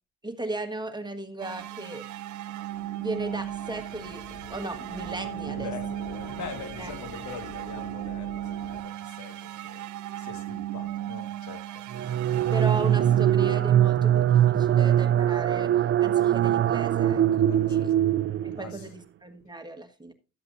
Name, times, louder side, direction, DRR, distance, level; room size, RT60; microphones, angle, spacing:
voice 1, 0.2-2.0 3.0-4.2 4.5-5.7 6.8-6.9 12.5-17.2 17.5-17.9 18.4-20.1, right 2 dB, 15° right, 1.4 m, -36 dB
sound 1, 1.4-13.5, right 13 dB, 70° right, 0.8 m, -36 dB
sound 2, 2.7-8.8, left 1 dB, 35° left, 1.9 m, -45 dB
voice 2, 5.4-9.8 10.2-11.8 17.4-17.9 18.6-18.8, left 5 dB, 70° left, 1.6 m, -43 dB
sound 3, 11.9-18.8, right 11 dB, 40° right, 0.4 m, -22 dB
13.0 x 7.7 x 2.6 m
cardioid pair, 90°, 30 cm